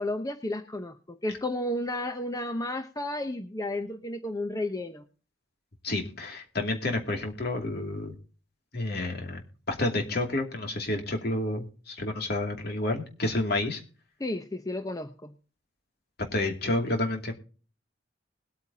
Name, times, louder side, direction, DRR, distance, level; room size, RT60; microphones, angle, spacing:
voice 1, 0.0-5.0 14.2-15.3, left 1 dB, 20° left, 6 dB, 0.8 m, -32 dB
voice 2, 5.8-8.1 8.7-13.8 16.3-17.3, left 2 dB, 55° left, 3 dB, 2.6 m, -30 dB
20.5 x 8.9 x 2.8 m, 0.38 s
head